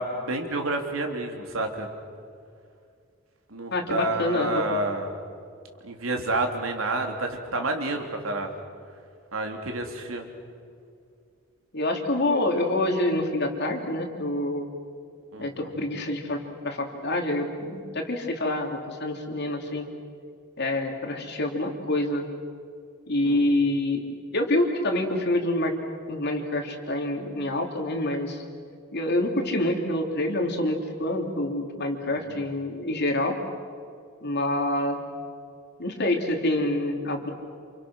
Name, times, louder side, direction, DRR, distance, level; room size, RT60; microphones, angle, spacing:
voice 1, 0.0-1.9 3.5-5.1 5.8-8.5 9.3-10.3 15.3-15.7 23.2-23.6 32.1-32.4, right 2 dB, 85° right, 3 dB, 3.4 m, -29 dB
voice 2, 3.7-4.6 11.7-14.7 15.4-19.9 20.6-22.2 23.1-24.0 24.3-25.7 26.1-28.4 28.9-33.4 34.2-35.0 35.8-37.3, left 1 dB, 55° left, 3 dB, 3.4 m, -27 dB
29.0 x 28.5 x 6.4 m, 2.3 s
head